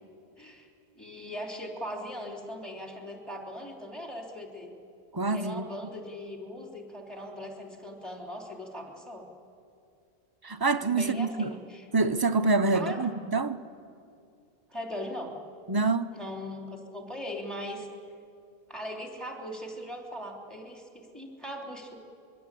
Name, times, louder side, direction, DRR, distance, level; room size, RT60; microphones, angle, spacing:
voice 1, 0.4-0.7 0.9-4.7 5.3-9.2 11.0-11.8 12.7-13.1 14.7-15.3 16.1-17.9 18.7-22.0, equal, ahead, 3.4 m, -39 dB
voice 2, 5.1-5.7 10.4-11.5 11.9-13.6 15.7-16.1, right 3 dB, 25° right, 0.5 m, -26 dB
24.0 x 22.5 x 8.4 m
omnidirectional pair, 1.1 m